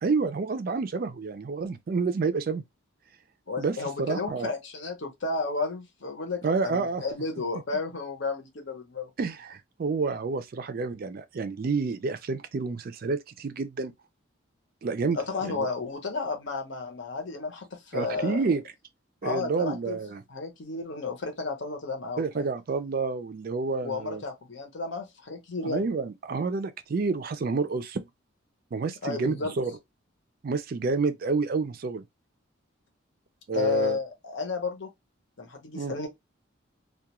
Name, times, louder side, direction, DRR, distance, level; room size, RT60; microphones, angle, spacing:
voice 1, 0.0-2.6 3.6-4.5 6.4-7.0 9.2-13.9 14.8-15.7 17.9-18.6 19.2-20.2 22.2-24.2 25.6-28.0 28.7-29.8 30.4-32.0 33.5-34.0 35.7-35.9, right 4 dB, 45° right, 0.3 m, -29 dB
voice 2, 3.5-9.1 15.1-18.4 19.2-20.0 20.3-22.5 23.8-25.8 29.0-29.5 33.5-34.9 35.4-36.1, left 3 dB, 65° left, 0.7 m, -32 dB
2.3 x 2.2 x 2.9 m
head